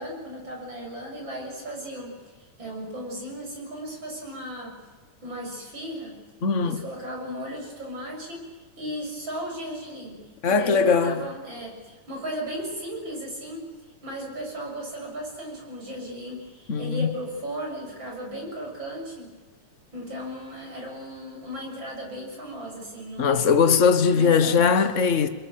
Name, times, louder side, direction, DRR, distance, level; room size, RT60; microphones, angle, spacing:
voice 1, 0.0-4.8 5.2-6.2 6.6-8.5 8.8-13.7 14.0-19.3 19.9-23.5 24.1-24.8, equal, 35° right, 7.6 m, -36 dB
voice 2, 6.4-6.8 10.4-11.2 16.7-17.1 23.2-25.3, left 5 dB, 50° left, 0.9 m, -20 dB
29.0 x 22.5 x 7.7 m
omnidirectional pair, 3.6 m